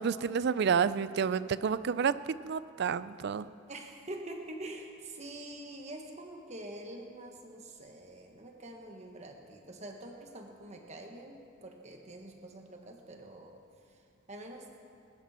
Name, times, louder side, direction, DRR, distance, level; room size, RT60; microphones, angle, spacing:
voice 1, 0.0-2.1 2.4-3.5, right 6 dB, 55° right, 16 dB, 0.3 m, -29 dB
voice 2, 3.7-13.6 14.3-14.7, right 1 dB, 35° right, 2 dB, 1.4 m, -45 dB
20.5 x 12.5 x 4.3 m, 2.4 s
head